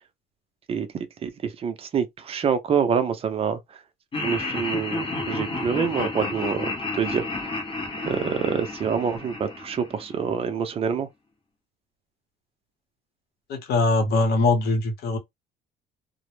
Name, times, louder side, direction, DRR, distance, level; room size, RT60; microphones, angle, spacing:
voice 1, 0.7-3.8 4.2-7.5 8.0-11.1, right 7 dB, 35° right, 0.5 m, -27 dB
Laughter, 4.1-10.3, left 2 dB, 30° left, 0.7 m, -31 dB
voice 2, 13.5-15.2, left 2 dB, 70° left, 0.8 m, -22 dB
2.0 x 2.0 x 3.0 m
cardioid pair, 110°, 17 cm